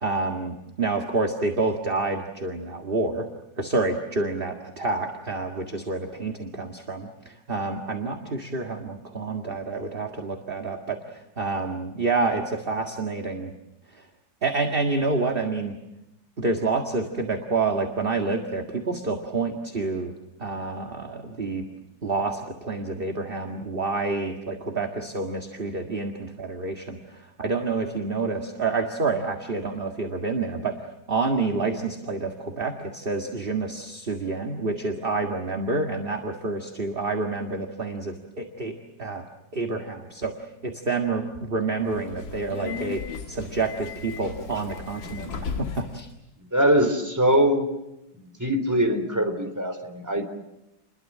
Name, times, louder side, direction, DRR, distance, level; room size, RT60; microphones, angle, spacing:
voice 1, 0.0-3.3 3.6-13.5 14.4-15.8 16.4-20.1 20.4-21.7 22.0-30.8 31.1-38.7 39.0-39.2 39.5-40.3 40.6-43.0 43.3-45.3 45.8-46.1, right 3 dB, 30° right, 3 dB, 2.0 m, -28 dB
Subway metro underground, 41.8-46.0, left 5 dB, 90° left, 2.6 m, -36 dB
voice 2, 46.5-47.6 48.2-50.3, equal, 10° right, 5 dB, 3.5 m, -22 dB
29.5 x 22.0 x 7.5 m, 0.92 s
omnidirectional pair, 2.0 m